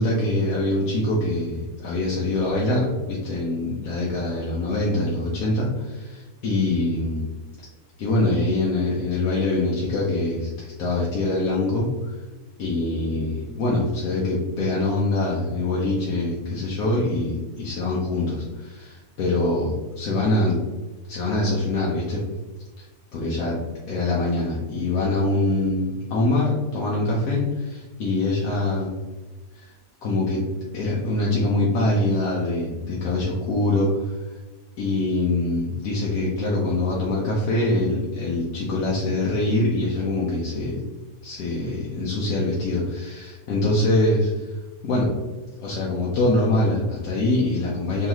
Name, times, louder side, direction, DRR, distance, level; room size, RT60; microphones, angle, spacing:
voice 1, 0.0-7.3 8.0-12.1 12.6-20.6 21.1-22.2 22.8-22.9 23.1-23.6 23.9-28.9 29.5-29.7 30.0-30.4 30.7-34.2 34.8-40.8 41.2-44.4 44.8-45.1 45.6-48.1, left 2 dB, 70° left, -5 dB, 1.2 m, -24 dB
3.8 x 3.2 x 3.0 m, 1.2 s
omnidirectional pair, 1.6 m